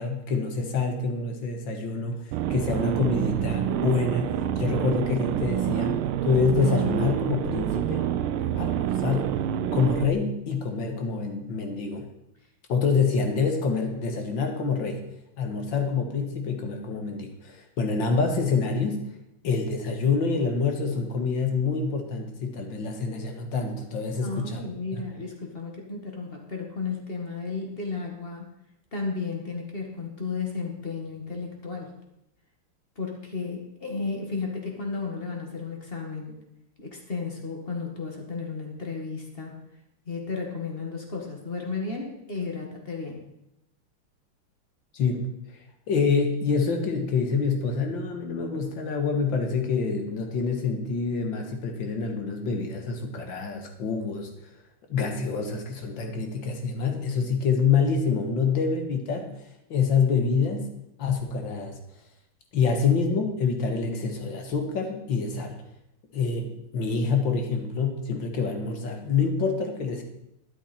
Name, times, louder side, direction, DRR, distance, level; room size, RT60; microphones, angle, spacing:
voice 1, 0.0-8.1 8.6-9.4 9.7-12.1 12.7-15.0 15.4-19.1 19.4-24.6 24.9-25.0 44.9-45.6 45.9-54.3 54.9-59.3 59.7-60.7 61.0-61.8 62.5-65.6 66.1-70.0, left 5 dB, 60° left, 4 dB, 2.2 m, -26 dB
sound 1, 2.3-10.1, right 10 dB, 80° right, 1.4 m, -27 dB
voice 2, 24.2-28.5 28.9-31.9 33.0-36.4 36.8-39.6 40.1-43.2, left 4 dB, 25° left, 1 dB, 1.9 m, -33 dB
12.0 x 10.5 x 4.4 m, 0.83 s
omnidirectional pair, 2.4 m